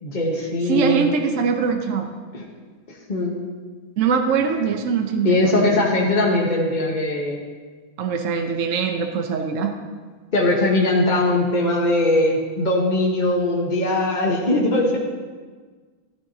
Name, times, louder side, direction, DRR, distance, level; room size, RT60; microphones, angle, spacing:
voice 1, 0.0-1.0 2.3-2.4 3.1-3.4 5.2-7.4 10.3-15.0, left 2 dB, 30° left, -3 dB, 1.0 m, -20 dB
voice 2, 0.7-2.1 4.0-5.8 8.0-9.8, right 6 dB, 60° right, 4 dB, 0.8 m, -22 dB
13.0 x 13.0 x 2.8 m, 1.5 s
omnidirectional pair, 2.2 m